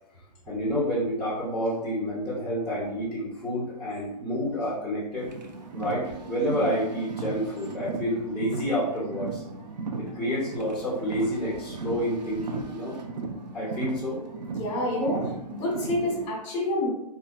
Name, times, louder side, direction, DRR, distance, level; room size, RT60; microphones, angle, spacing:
voice 1, 0.5-5.3 5.7-9.4 10.0-13.0 13.5-14.2, equal, ahead, -8 dB, 0.6 m, -29 dB
Car, 5.2-16.3, right 4 dB, 80° right, 0.5 m, -36 dB
voice 2, 14.5-15.2 15.5-16.9, left 1 dB, 25° left, -2 dB, 1.0 m, -27 dB
3.2 x 2.2 x 2.3 m, 0.86 s
hypercardioid pair, 135°, 21 cm